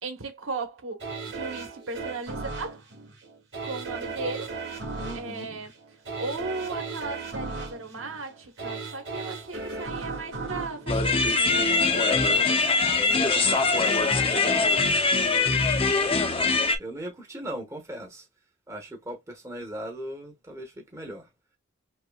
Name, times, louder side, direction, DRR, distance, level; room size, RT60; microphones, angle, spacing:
voice 1, 0.0-2.9 3.6-4.6 5.1-5.7 6.2-12.8, right 3 dB, 85° right, 1.1 m, -36 dB
sound 1, 1.0-12.0 12.4-12.5, right 4 dB, 60° right, 1.6 m, -37 dB
voice 2, 5.0-5.6 11.6-14.9 15.2-16.5 16.8-18.2 18.7-21.3, right 1 dB, 15° right, 1.0 m, -39 dB
sound 2, 10.9-16.8, left 3 dB, 30° left, 0.6 m, -22 dB
5.5 x 2.2 x 2.3 m
head